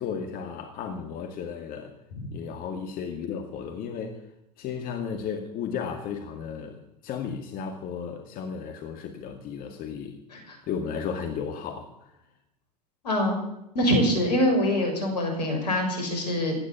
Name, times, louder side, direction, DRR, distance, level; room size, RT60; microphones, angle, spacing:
voice 1, 0.0-1.9 2.3-4.2 4.6-10.2 10.7-11.9, left 6 dB, 45° left, 5 dB, 2.1 m, -34 dB
voice 2, 13.0-13.4 13.7-16.6, equal, 80° left, 3 dB, 6.5 m, -24 dB
17.0 x 12.0 x 7.2 m, 0.86 s
hypercardioid pair, 85°, 21 cm